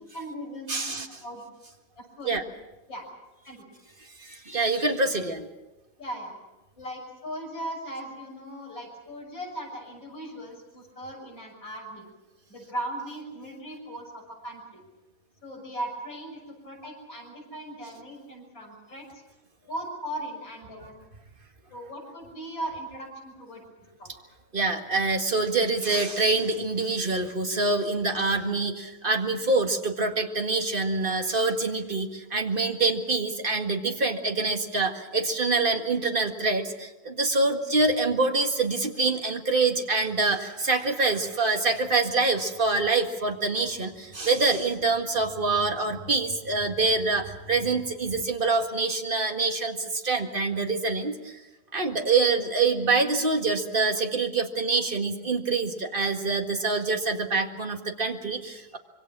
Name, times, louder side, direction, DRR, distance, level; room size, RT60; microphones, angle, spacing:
voice 1, 0.1-0.9 1.2-1.4 2.0-2.3 2.9-3.1 3.4-3.6 6.0-6.3 6.8-12.1 12.5-14.8 15.4-19.1 19.7-20.9 21.7-23.6 24.0-24.1, right 1 dB, 70° left, 0 dB, 7.2 m, -38 dB
voice 2, 0.7-1.1 2.2-2.4 4.2-5.5 24.5-51.3 51.7-58.8, right 3 dB, 30° right, 4 dB, 1.9 m, -25 dB
26.0 x 23.5 x 6.1 m, 1.0 s
omnidirectional pair, 2.1 m